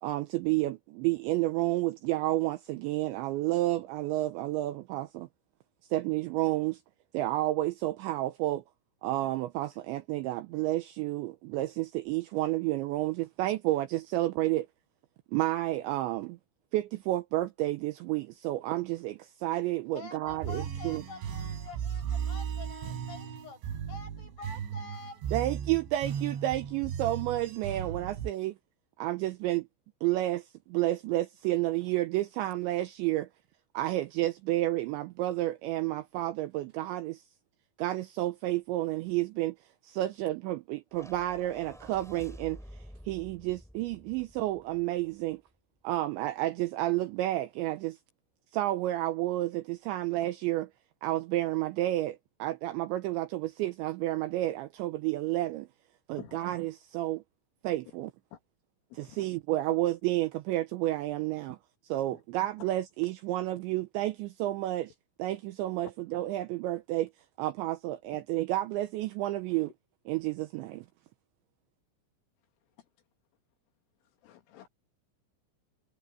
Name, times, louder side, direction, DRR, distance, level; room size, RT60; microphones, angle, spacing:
voice 1, 0.0-5.3 5.9-6.8 7.1-8.6 9.0-14.7 15.3-16.4 16.7-21.0 25.3-28.5 29.0-29.7 30.0-33.3 33.7-37.2 37.8-39.6 39.8-42.6 43.1-45.4 45.8-48.0 48.5-50.7 51.0-55.7 56.1-57.2 57.6-58.1 59.0-61.6 61.9-64.9 65.2-67.1 67.4-69.7 70.1-70.9, right 16 dB, 85° right, 2.7 m, -30 dB
voice 2, 19.9-23.6 23.9-25.2, left 4 dB, 40° left, 7.6 m, -47 dB
sound 1, 20.3-28.3, right 8 dB, 65° right, 5.4 m, -36 dB
sound 2, 40.9-45.3, equal, ahead, 2.8 m, -50 dB
voice 3, 58.9-59.3 62.1-62.2 72.8-72.9 74.2-74.7, left 12 dB, 75° left, 4.3 m, -50 dB
omnidirectional pair, 6.0 m